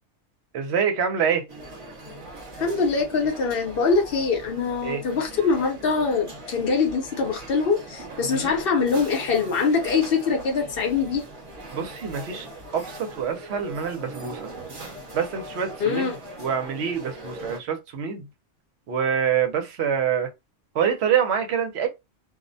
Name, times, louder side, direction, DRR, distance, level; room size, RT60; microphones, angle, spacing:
voice 1, 0.5-1.4 4.8-5.0 8.3-8.5 11.7-14.5 15.1-16.1 16.4-18.3 18.9-20.3 20.7-21.9, right 7 dB, 65° right, 0.8 m, -26 dB
sound 1, 1.5-17.6, right 2 dB, 30° right, 0.7 m, -40 dB
voice 2, 2.6-11.3 15.8-16.2, left 5 dB, 55° left, 0.8 m, -23 dB
2.3 x 2.0 x 2.5 m
omnidirectional pair, 1.3 m